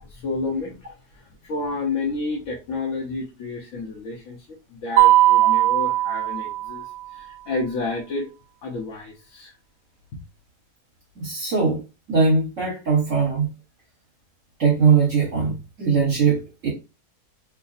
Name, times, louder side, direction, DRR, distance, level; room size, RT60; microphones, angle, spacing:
voice 1, 0.1-0.8 1.4-4.4 4.7-6.8 7.1-8.3 8.6-9.5, left 3 dB, 60° left, 0.9 m, -30 dB
Mallet percussion, 5.0-7.0, right 15 dB, 75° right, 1.1 m, -18 dB
voice 2, 11.2-11.8 12.1-13.5 14.6-16.7, right 5 dB, 55° right, 1.5 m, -20 dB
3.3 x 2.0 x 3.9 m
omnidirectional pair, 1.7 m